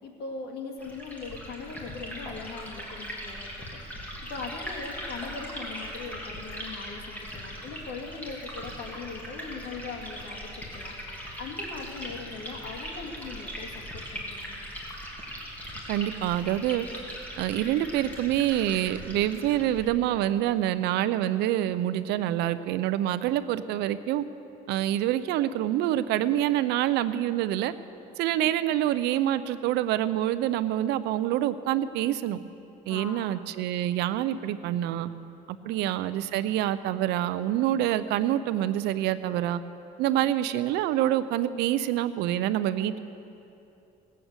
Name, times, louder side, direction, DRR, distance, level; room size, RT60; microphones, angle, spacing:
voice 1, 0.0-3.8 4.3-10.9 11.4-14.6 28.4-28.5 32.9-33.4 35.6-35.7 40.2-40.3, left 4 dB, 70° left, 2 dB, 2.1 m, -40 dB
Liquid, 0.8-19.9, equal, 10° left, 2.9 m, -40 dB
voice 2, 15.9-16.9 17.4-24.2 24.7-27.7 28.2-32.4 32.9-35.1 35.5-39.6 40.0-43.0, right 12 dB, 85° right, 14 dB, 0.6 m, -26 dB
18.5 x 7.7 x 8.0 m, 2.8 s
cardioid pair, 110°, 17 cm